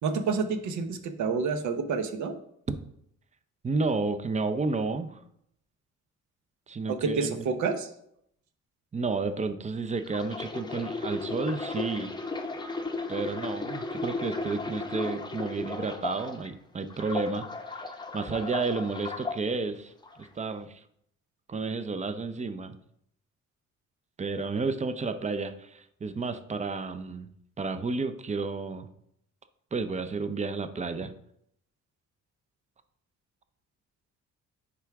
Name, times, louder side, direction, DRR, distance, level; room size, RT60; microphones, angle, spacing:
voice 1, 0.0-2.3 6.9-7.9, right 5 dB, 70° right, 8 dB, 0.9 m, -29 dB
voice 2, 3.6-5.2 6.7-7.5 8.9-12.1 13.1-19.9 20.2-20.8 21.5-22.8 24.2-27.3 27.6-28.9 29.7-31.1, right 4 dB, 25° right, 10 dB, 0.6 m, -31 dB
sound 1, 10.0-16.5 16.9-19.4 20.0-20.3, left 3 dB, 15° left, 0.7 m, -35 dB
9.4 x 3.6 x 3.5 m, 0.73 s
cardioid pair, 90°, 30 cm